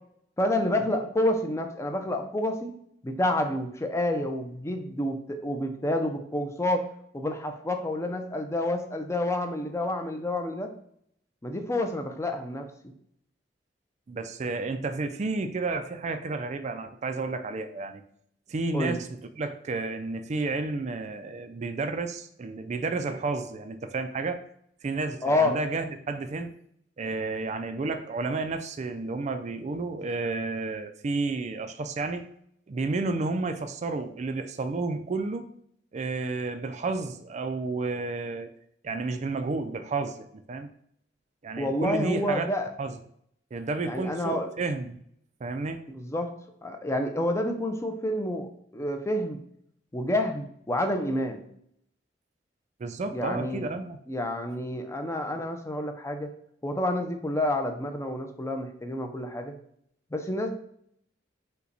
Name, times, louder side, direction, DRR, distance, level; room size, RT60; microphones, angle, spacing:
voice 1, 0.4-2.7 3.0-6.9 7.1-10.7 11.4-12.7 18.7-19.0 25.2-25.6 41.6-42.7 43.8-44.5 45.9-46.3 46.6-49.4 49.9-51.5 53.1-53.7 54.1-56.3 56.6-59.5 60.1-60.5, left 1 dB, 15° left, 5 dB, 0.5 m, -29 dB
voice 2, 14.1-18.0 18.5-19.1 19.4-24.4 24.8-26.5 27.0-32.3 32.7-35.5 35.9-38.5 38.8-40.7 41.4-42.5 42.8-43.0 43.5-45.0 45.4-45.8 52.8-54.0, right 3 dB, 40° right, 8 dB, 0.4 m, -31 dB
5.5 x 2.2 x 4.0 m, 0.67 s
head